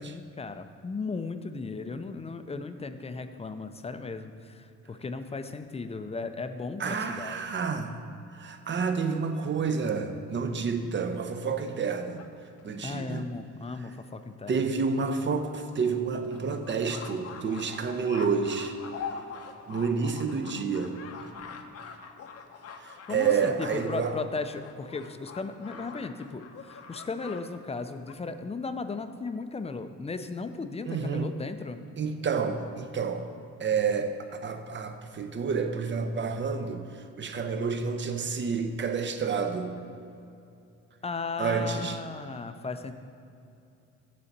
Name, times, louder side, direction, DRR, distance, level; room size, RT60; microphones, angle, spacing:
voice 1, 0.0-7.5 12.8-14.6 23.1-31.8 41.0-42.9, left 4 dB, 20° left, 9 dB, 0.5 m, -36 dB
voice 2, 6.8-7.9 8.3-12.2 12.6-13.3 14.5-18.8 19.7-21.0 22.8-24.1 30.9-31.3 32.0-33.3 33.6-39.8 41.4-42.0, right 5 dB, 40° right, 7 dB, 0.7 m, -29 dB
sound 1, 11.3-12.9 13.7-13.8 14.1-14.2 14.5-14.6 15.0-15.1 15.6-27.4 27.7-28.1, left 6 dB, 55° left, 0.7 m, -44 dB
8.5 x 4.1 x 6.6 m, 2.7 s
cardioid pair, 90°, 30 cm